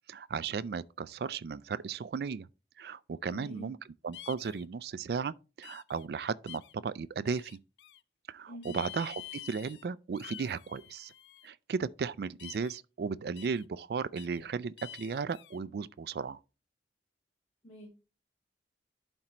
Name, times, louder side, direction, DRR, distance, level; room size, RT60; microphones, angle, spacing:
voice 1, 0.1-2.5 2.8-3.8 4.0-7.6 8.3-11.1 11.4-16.4, right 5 dB, 60° right, 0.3 m, -35 dB
voice 2, 3.3-3.8 8.5-8.8 17.6-18.0, equal, 35° left, 2.7 m, -47 dB
sound 1, 4.1-4.6 5.6-6.0 6.5-6.7 7.3-8.0 8.6-9.8 10.1-11.5 12.4-12.8 13.4-13.6 14.2-14.4 14.8-15.6, left 12 dB, 75° left, 0.4 m, -48 dB
11.5 x 4.4 x 2.9 m
head